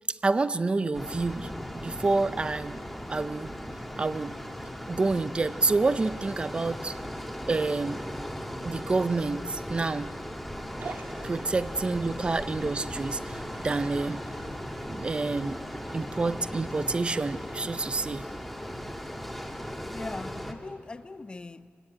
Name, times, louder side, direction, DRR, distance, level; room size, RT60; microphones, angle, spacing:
voice 1, 0.1-2.8 3.1-3.5 4.0-4.4 4.9-7.0 7.5-8.0 8.6-10.1 11.2-14.2 14.9-15.6 15.9-18.3, right 3 dB, 30° right, 0.6 m, -28 dB
sound 1, 0.9-20.5, equal, ahead, 1.6 m, -38 dB
sound 2, 10.8-16.1, right 4 dB, 65° right, 1.9 m, -47 dB
voice 2, 19.9-21.7, left 3 dB, 25° left, 0.6 m, -40 dB
26.0 x 18.0 x 9.9 m
wide cardioid pair, 150°, 4 cm